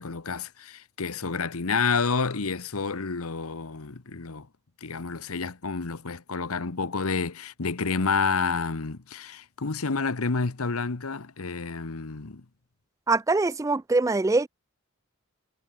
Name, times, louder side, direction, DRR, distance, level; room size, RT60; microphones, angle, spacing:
voice 1, 0.0-4.5 4.8-12.4, left 4 dB, 90° left, 1.1 m, -29 dB
voice 2, 13.1-14.5, right 3 dB, 15° right, 0.3 m, -23 dB
head